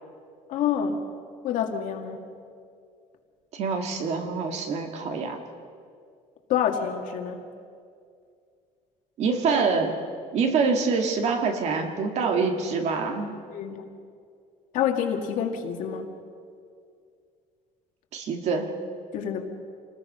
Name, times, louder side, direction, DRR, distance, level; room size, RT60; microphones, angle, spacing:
voice 1, 0.5-1.0 1.4-2.3 6.5-7.4 13.5-13.9 14.7-16.1 19.1-19.5, left 8 dB, 65° left, 4 dB, 2.1 m, -27 dB
voice 2, 3.5-5.4 9.2-10.0 10.3-13.3 18.1-18.7, right 4 dB, 50° right, 4 dB, 2.0 m, -25 dB
27.0 x 19.5 x 5.6 m, 2.3 s
cardioid pair, 165°, 14 cm